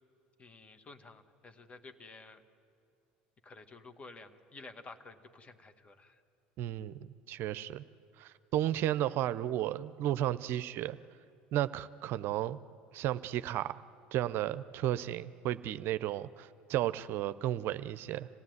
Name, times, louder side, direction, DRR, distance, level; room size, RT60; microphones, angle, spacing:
voice 1, 0.4-2.4 3.4-6.2, left 3 dB, 30° left, 8 dB, 1.8 m, -52 dB
voice 2, 6.6-7.0 7.3-7.8 8.2-11.0 11.5-12.6 12.9-13.8 14.1-18.3, right 13 dB, 60° right, 15 dB, 0.6 m, -33 dB
26.5 x 16.5 x 9.5 m, 2.5 s
hypercardioid pair, 75°, 4 cm